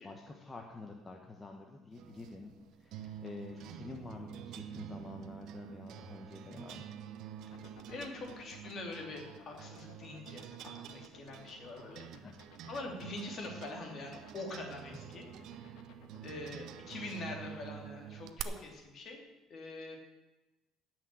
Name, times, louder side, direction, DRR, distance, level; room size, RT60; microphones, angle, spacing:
voice 1, 0.0-2.5 2.8-6.9 12.2-12.4, left 3 dB, 15° left, 2 dB, 1.1 m, -48 dB
sound 1, 2.0-18.4, right 10 dB, 60° right, 0.8 m, -48 dB
sound 2, 7.4-17.8, left 8 dB, 75° left, 1.4 m, -57 dB
voice 2, 7.9-12.1 12.7-15.8 16.2-19.2 19.5-20.0, left 2 dB, 40° left, 2 dB, 2.8 m, -44 dB
17.0 x 6.2 x 7.7 m, 1.1 s
cardioid pair, 150°, 0 cm